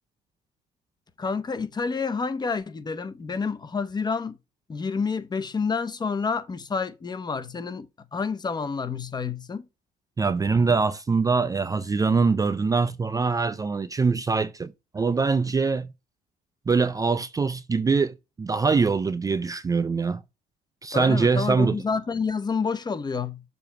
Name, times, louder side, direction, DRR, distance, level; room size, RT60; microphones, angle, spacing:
voice 1, 1.2-4.4 4.7-9.7 20.9-23.4, left 5 dB, 25° left, 0.8 m, -29 dB
voice 2, 10.2-15.9 16.7-20.2 20.8-21.8, right 4 dB, 20° right, 0.4 m, -23 dB
7.0 x 2.9 x 5.8 m
cardioid pair, 110°, 17 cm